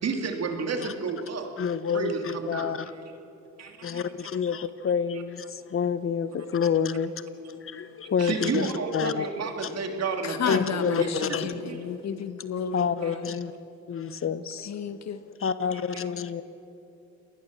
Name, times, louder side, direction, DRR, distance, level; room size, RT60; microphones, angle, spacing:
voice 1, 0.0-1.5 1.9-2.8 3.6-3.7 8.2-11.8 13.0-13.1, right 4 dB, 55° right, 5 dB, 3.0 m, -31 dB
voice 2, 1.6-2.9 3.8-7.2 7.5-9.3 9.6-9.7 10.5-11.4 12.7-13.5 13.9-14.7 15.4-16.4, left 7 dB, 45° left, 13 dB, 1.1 m, -28 dB
voice 3, 10.3-11.0 11.4-13.2 14.7-15.2, left 7 dB, 60° left, 10 dB, 1.7 m, -32 dB
28.0 x 20.0 x 7.5 m, 3.0 s
cardioid pair, 90°, 30 cm